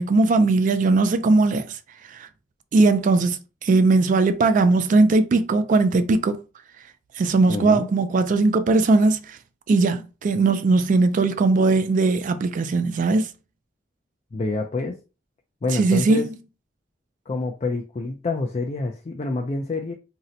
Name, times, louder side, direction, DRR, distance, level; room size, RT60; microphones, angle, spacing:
voice 1, 0.0-1.8 2.1-2.3 2.7-6.4 7.2-9.4 9.7-13.3 15.7-16.2, right 3 dB, 45° right, 0.3 m, -19 dB
voice 2, 7.5-7.9 14.3-15.0 15.6-16.3 17.3-19.9, left 3 dB, 35° left, 0.4 m, -27 dB
2.7 x 2.1 x 3.8 m
head